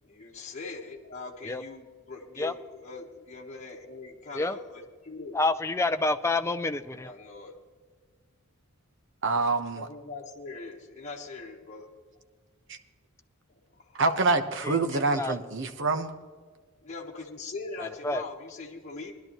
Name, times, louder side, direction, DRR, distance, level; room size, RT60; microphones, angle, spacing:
voice 1, 0.0-5.4 7.0-7.5 9.6-11.9 13.7-14.0 16.8-19.1, left 3 dB, 35° left, -2 dB, 1.3 m, -41 dB
voice 2, 5.3-7.1 14.6-14.8 15.2-15.4 17.8-18.2, left 2 dB, 15° left, 8 dB, 0.5 m, -28 dB
voice 3, 9.2-9.9 13.9-16.1, right 3 dB, 60° right, 8 dB, 1.0 m, -26 dB
20.5 x 11.5 x 3.0 m, 1.5 s
head